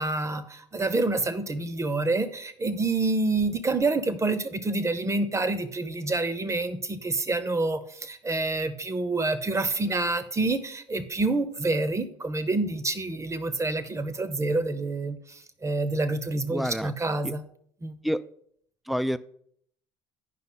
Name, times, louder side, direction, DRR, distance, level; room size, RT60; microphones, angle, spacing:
voice 1, 0.0-17.4 17.8-18.0, right 2 dB, 20° right, 13 dB, 0.8 m, -27 dB
voice 2, 16.5-16.9 17.2-17.3 18.0-18.2 18.9-19.2, equal, ahead, 15 dB, 0.3 m, -28 dB
9.2 x 5.5 x 3.9 m, 0.66 s
hypercardioid pair, 60°, 15 cm